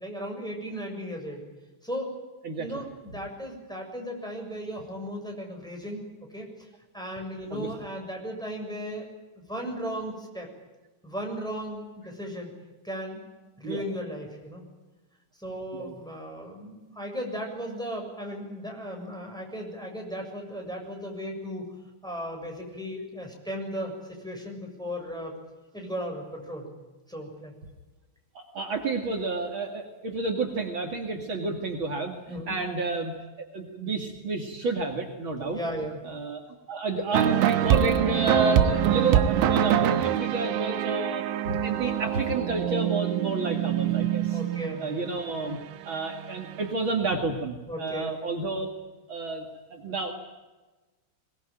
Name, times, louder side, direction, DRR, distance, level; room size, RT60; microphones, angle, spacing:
voice 1, 0.0-1.4 1.8-2.1 2.6-6.1 6.3-6.7 6.9-9.1 9.3-10.5 11.0-12.5 12.8-13.2 13.6-14.6 15.4-21.7 22.0-25.4 25.7-26.7 27.1-27.5 32.3-32.6 35.3-36.0 44.3-45.0 47.7-48.2, equal, ahead, 0 dB, 6.5 m, -36 dB
voice 2, 28.3-32.2 32.5-33.1 33.5-35.6 36.0-36.4 36.7-44.4 44.8-45.6 45.8-48.7 49.1-49.4 49.7-50.1, right 3 dB, 60° right, 3 dB, 1.3 m, -30 dB
sound 1, 37.1-46.7, right 10 dB, 75° right, 3.4 m, -25 dB
23.5 x 21.0 x 9.1 m, 1.2 s
omnidirectional pair, 5.8 m